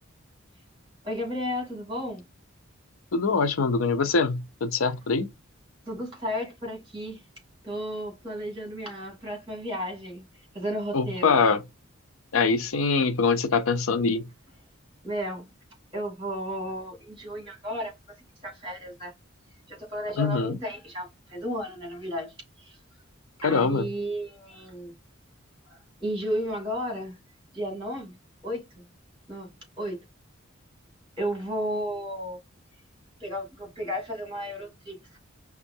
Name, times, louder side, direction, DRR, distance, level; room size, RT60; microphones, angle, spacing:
voice 1, 1.0-2.2 5.9-7.2 7.6-10.2 10.5-11.4 15.0-15.4 15.9-17.9 18.4-19.1 19.7-22.8 23.4-24.9 25.7-27.2 27.5-28.2 28.4-28.9 29.3-29.5 29.8-30.0 31.2-32.4 33.2-35.2, equal, 25° right, 2.7 m, -33 dB
voice 2, 3.1-5.3 10.9-11.6 12.3-14.3 20.2-20.6 23.4-23.9, left 4 dB, 90° left, 0.6 m, -23 dB
5.3 x 2.4 x 2.7 m
head